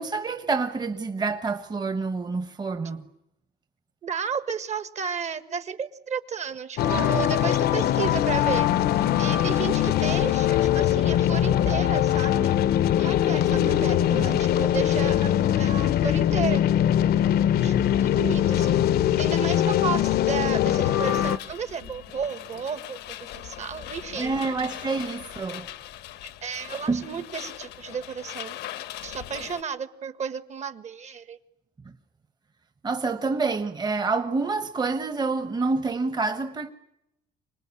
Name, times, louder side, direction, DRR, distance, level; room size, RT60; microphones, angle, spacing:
voice 1, 0.0-3.0 13.3-14.4 24.2-25.7 26.9-27.1 32.8-36.7, right 4 dB, 25° right, 1.2 m, -28 dB
voice 2, 4.0-12.6 13.0-16.6 17.6-18.8 19.2-24.4 26.2-28.6 29.0-31.4, right 6 dB, 40° right, 1.5 m, -33 dB
sound 1, 6.8-21.4, left 11 dB, 70° left, 0.9 m, -22 dB
sound 2, 21.0-29.6, left 13 dB, 85° left, 1.3 m, -40 dB
25.5 x 20.0 x 9.8 m
cardioid pair, 110°, 17 cm